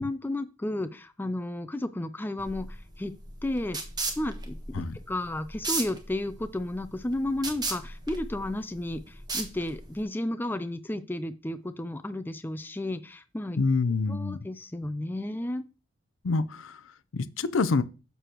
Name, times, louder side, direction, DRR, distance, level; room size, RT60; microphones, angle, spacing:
voice 1, 0.0-3.1 3.4-3.8 4.2-13.6 14.1-15.6, left 1 dB, 10° left, 0.4 m, -33 dB
sound 1, 2.4-10.0, right 3 dB, 20° right, 1.1 m, -36 dB
voice 2, 13.6-14.4 16.2-16.8 17.1-17.8, left 4 dB, 85° left, 0.5 m, -26 dB
6.7 x 6.6 x 3.0 m
head